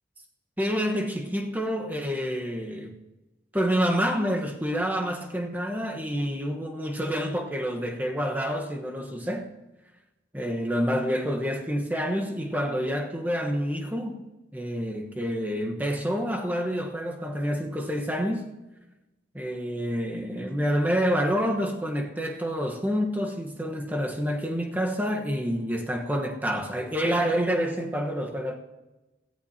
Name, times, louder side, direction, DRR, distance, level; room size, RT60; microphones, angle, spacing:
voice 1, 0.6-2.9 3.5-9.5 10.3-14.2 14.5-18.5 19.3-28.6, equal, 10° right, 1.3 m, -28 dB
16.5 x 14.5 x 2.9 m
head